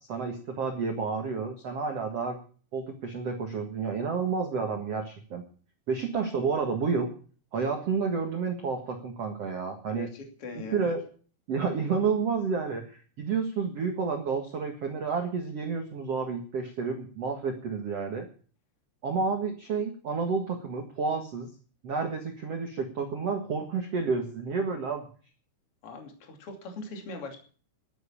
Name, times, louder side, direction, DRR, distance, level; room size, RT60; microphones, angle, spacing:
voice 1, 0.1-2.4 2.7-5.4 5.9-7.1 7.5-10.1 10.7-11.0 11.5-18.3 19.0-21.5 21.8-25.1, right 5 dB, 55° right, 3 dB, 1.7 m, -30 dB
voice 2, 9.9-10.9 25.8-27.4, left 3 dB, 35° left, 3 dB, 2.8 m, -41 dB
12.5 x 9.2 x 8.7 m, 0.42 s
omnidirectional pair, 5.4 m